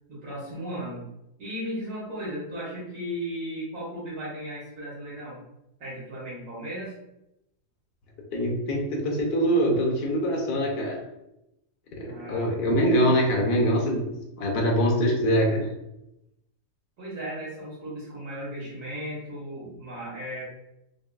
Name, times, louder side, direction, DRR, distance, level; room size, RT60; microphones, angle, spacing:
voice 1, 0.1-1.1 1.4-5.4 5.8-6.9 12.0-12.5 17.0-20.5, equal, 75° right, -7 dB, 1.8 m, -36 dB
voice 2, 8.3-11.0 11.9-14.1 14.4-15.7, equal, 75° left, 0 dB, 1.3 m, -24 dB
5.1 x 2.3 x 2.2 m, 0.87 s
omnidirectional pair, 1.7 m